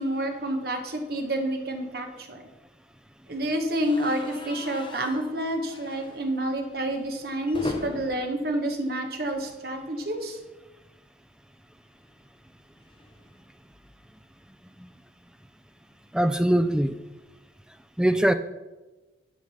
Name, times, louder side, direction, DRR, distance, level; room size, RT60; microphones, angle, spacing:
voice 1, 0.0-2.4 3.3-10.4, right 1 dB, 55° right, 4 dB, 1.2 m, -29 dB
sound 1, 3.7-9.7 10.0-10.2 10.5-10.6 11.8-14.2, left 1 dB, 25° left, 0.7 m, -42 dB
voice 2, 16.1-17.0 18.0-18.3, right 1 dB, 5° right, 9 dB, 0.3 m, -22 dB
10.5 x 5.1 x 5.6 m, 1.2 s
head